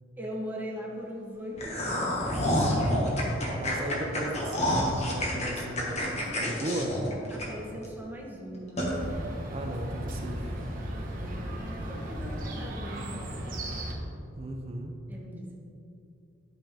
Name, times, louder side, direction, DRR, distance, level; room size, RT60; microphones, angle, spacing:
voice 1, 0.2-2.4 7.3-8.9 11.0-13.2 15.1-15.6, equal, 10° right, -3 dB, 1.3 m, -40 dB
sound 1, 1.6-7.9 8.2-8.3 8.8-8.9, equal, 35° left, 1.5 m, -28 dB
voice 2, 3.6-7.0 9.5-10.5 14.4-15.0, right 1 dB, 30° right, 3 dB, 0.7 m, -36 dB
Chirp tweet, 8.8-13.9, right 1 dB, 45° right, 1.3 m, -36 dB
12.0 x 5.4 x 3.6 m, 2.6 s
head